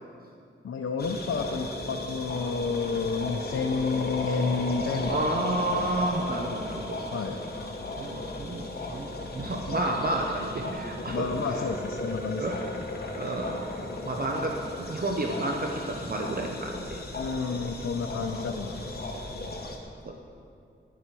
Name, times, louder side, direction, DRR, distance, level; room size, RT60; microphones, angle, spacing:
voice 1, 0.6-5.9 7.1-7.4 11.1-12.7 17.1-19.0, left 5 dB, 90° left, 3 dB, 0.7 m, -31 dB
sound 1, 1.0-19.8, left 2 dB, 50° left, 1.4 m, -35 dB
voice 2, 5.1-7.2 7.9-11.3 12.4-12.6 13.1-13.6 14.0-17.0 20.0-20.1, right 2 dB, 45° right, 1 dB, 0.8 m, -31 dB
9.8 x 9.4 x 6.1 m, 2.4 s
wide cardioid pair, 105°, 21 cm